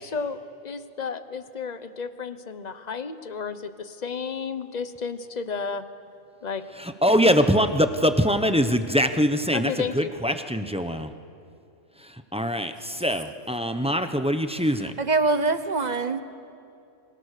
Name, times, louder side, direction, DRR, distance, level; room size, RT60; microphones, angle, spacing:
voice 1, 0.0-5.9 6.4-6.6 9.5-10.1, left 5 dB, 35° left, 11 dB, 1.0 m, -32 dB
voice 2, 7.0-11.1 12.0-14.9, equal, 5° right, 8 dB, 0.9 m, -23 dB
voice 3, 15.0-16.2, right 3 dB, 35° right, 10 dB, 1.1 m, -24 dB
30.0 x 24.5 x 6.7 m, 2.5 s
omnidirectional pair, 1.4 m